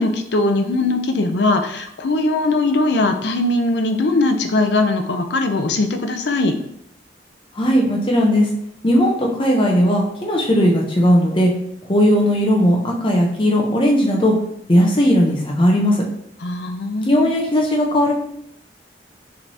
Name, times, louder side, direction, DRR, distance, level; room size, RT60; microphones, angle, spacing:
voice 1, 0.0-6.6 16.4-17.4, left 2 dB, 75° left, 7 dB, 0.5 m, -20 dB
voice 2, 7.6-8.5 8.8-11.5 11.9-14.3 14.7-16.0 17.1-18.1, equal, 30° left, -1 dB, 0.7 m, -17 dB
5.6 x 3.3 x 2.7 m, 0.74 s
head